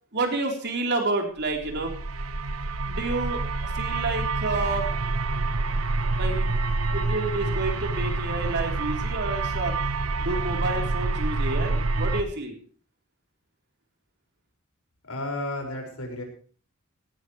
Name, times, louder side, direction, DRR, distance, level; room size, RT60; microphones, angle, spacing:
voice 1, 0.1-1.9 2.9-4.9 6.2-6.5 6.9-9.8 10.2-12.6, right 2 dB, 55° right, 2 dB, 3.9 m, -29 dB
sound 1, 1.5-12.2, right 3 dB, 75° right, 1.0 m, -27 dB
voice 2, 15.1-16.2, left 1 dB, 90° left, 2 dB, 5.6 m, -32 dB
18.0 x 16.5 x 3.3 m, 0.44 s
head